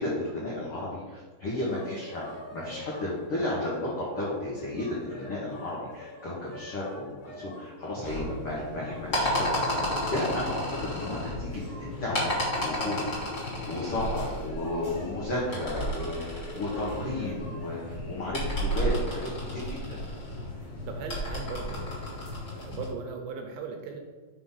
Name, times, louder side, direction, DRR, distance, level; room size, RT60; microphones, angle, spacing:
voice 1, 0.0-9.7 10.1-11.6 12.0-12.3 12.6-20.0, left 1 dB, 80° left, -6 dB, 1.3 m, -33 dB
sound 1, 1.5-18.0, left 2 dB, 50° left, 1.8 m, -46 dB
sound 2, 8.0-22.9, equal, 35° left, 1.8 m, -33 dB
voice 2, 20.9-22.2 22.6-24.0, right 5 dB, 80° right, 4 dB, 2.3 m, -38 dB
5.8 x 3.8 x 5.5 m, 1.4 s
omnidirectional pair, 4.5 m